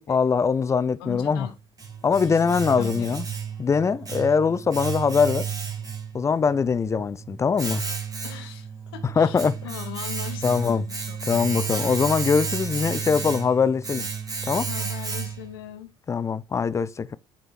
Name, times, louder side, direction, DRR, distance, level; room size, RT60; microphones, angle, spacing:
voice 1, 0.1-1.5 2.0-3.2 3.6-5.5 6.1-7.8 9.0-9.6 10.4-10.9 11.3-14.1 14.5-14.7 16.1-17.2, left 5 dB, 20° left, 0.5 m, -22 dB
voice 2, 1.0-1.5 2.3-2.4 2.8-3.2 8.2-11.6 14.7-15.9, left 12 dB, 70° left, 1.0 m, -39 dB
Domestic sounds home sounds, 1.3-15.6, right 6 dB, 30° right, 2.1 m, -32 dB
7.9 x 3.8 x 4.5 m
figure-of-eight pair, 55°, 13 cm